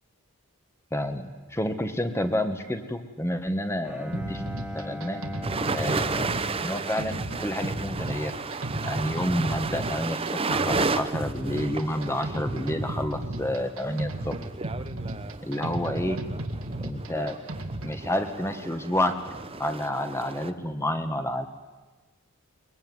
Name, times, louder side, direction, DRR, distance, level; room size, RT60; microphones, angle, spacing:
voice 1, 0.9-4.4 4.7-5.2 5.7-8.4 8.8-14.4 15.4-16.2 16.8-17.4 17.8-19.1 19.6-21.5, left 1 dB, 10° left, 7 dB, 1.5 m, -29 dB
Bowed string instrument, 3.8-8.2, equal, 5° right, 1.6 m, -40 dB
sound 1, 4.1-18.1, right 1 dB, 65° right, 2.0 m, -35 dB
sound 2, 5.4-20.5, right 4 dB, 25° right, 0.8 m, -33 dB
22.5 x 22.0 x 9.6 m, 1.3 s
head